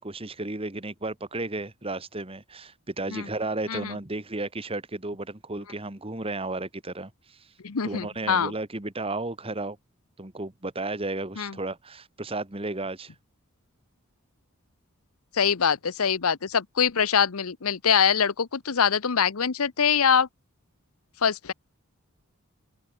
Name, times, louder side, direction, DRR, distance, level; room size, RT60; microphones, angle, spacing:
voice 1, 0.0-7.4 7.8-9.8 10.2-13.1, right 2 dB, 25° right, 1.6 m, -33 dB
voice 2, 7.6-8.5 11.4-11.5 15.3-20.3 21.2-21.5, left 7 dB, 85° left, 0.9 m, -24 dB
head